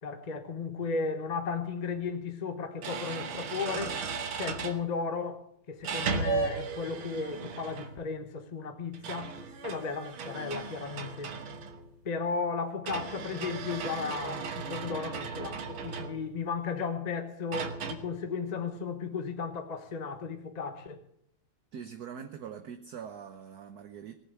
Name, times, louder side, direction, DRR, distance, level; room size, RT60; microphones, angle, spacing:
voice 1, 0.0-4.0 4.3-9.3 9.6-11.4 12.0-21.0, left 5 dB, 25° left, 1.1 m, -35 dB
sound 1, 1.9-2.0 2.8-4.8 5.8-8.1 8.9-11.9 12.9-16.4 17.5-17.9, right 5 dB, 85° right, 2.1 m, -36 dB
voice 2, 21.7-24.2, right 7 dB, 55° right, 1.3 m, -43 dB
18.5 x 8.1 x 8.1 m
omnidirectional pair, 2.2 m